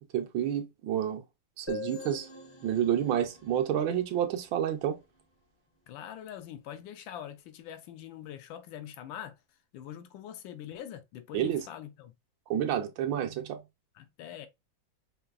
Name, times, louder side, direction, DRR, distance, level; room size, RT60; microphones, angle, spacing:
voice 1, 0.1-1.2 1.6-2.3 2.6-5.0 11.3-11.6 12.5-13.6, right 10 dB, 75° right, 1.3 m, -29 dB
sound 1, 1.7-5.2, left 5 dB, 30° left, 0.4 m, -45 dB
voice 2, 5.9-9.4 9.7-12.1 13.9-14.5, left 10 dB, 80° left, 1.3 m, -44 dB
5.2 x 2.6 x 2.4 m
omnidirectional pair, 2.2 m